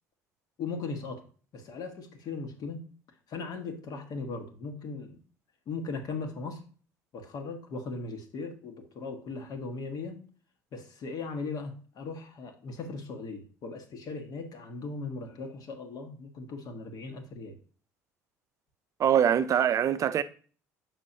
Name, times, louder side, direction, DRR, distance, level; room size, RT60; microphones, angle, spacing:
voice 1, 0.6-1.3 1.5-2.9 3.3-5.2 5.7-6.6 7.1-10.2 10.7-17.6, left 4 dB, 50° left, 1.4 m, -38 dB
voice 2, 19.0-20.2, right 9 dB, 40° right, 0.5 m, -23 dB
7.6 x 6.1 x 2.7 m
figure-of-eight pair, 60°, 8 cm